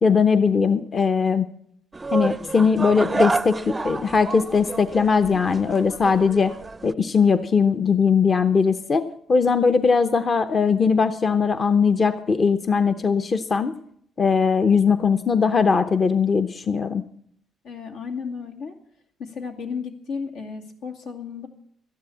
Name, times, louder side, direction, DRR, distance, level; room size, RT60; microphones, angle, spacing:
voice 1, 0.0-1.5 2.1-6.5 6.8-9.0 9.3-13.7 14.2-17.0, left 5 dB, 40° left, 11 dB, 0.8 m, -20 dB
sound 1, 1.9-6.9, right 3 dB, 20° right, 0.5 m, -29 dB
voice 2, 17.6-18.7 19.2-21.5, left 5 dB, 90° left, 1 dB, 2.3 m, -33 dB
12.5 x 10.5 x 8.5 m, 0.67 s
cardioid pair, 90°, 0 cm